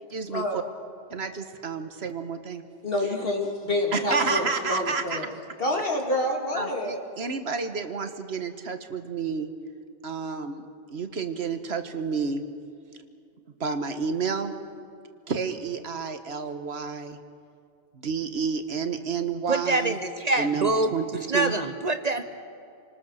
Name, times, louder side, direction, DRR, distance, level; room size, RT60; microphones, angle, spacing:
voice 1, 0.1-0.6 1.1-2.6 3.9-5.3 6.5-9.5 10.0-12.4 13.6-14.5 15.3-17.2 17.9-20.0 20.4-21.5, right 5 dB, 75° right, 8 dB, 1.5 m, -30 dB
voice 2, 2.8-5.3 5.6-7.0, left 1 dB, 60° left, 1 dB, 2.9 m, -27 dB
voice 3, 19.5-20.9 21.3-22.2, right 2 dB, 40° right, 8 dB, 1.0 m, -25 dB
28.0 x 19.5 x 6.5 m, 2.4 s
omnidirectional pair, 1.1 m